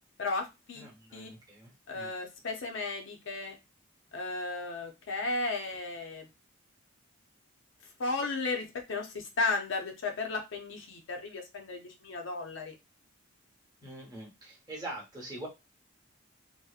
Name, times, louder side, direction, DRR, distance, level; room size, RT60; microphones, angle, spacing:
voice 1, 0.2-0.8 1.1-1.3 1.9-3.6 4.1-6.3 8.0-12.7, left 3 dB, 60° left, 3 dB, 0.5 m, -34 dB
voice 2, 0.7-2.1 13.8-15.5, right 1 dB, 20° right, -3 dB, 0.9 m, -44 dB
2.7 x 2.0 x 2.3 m, 0.24 s
head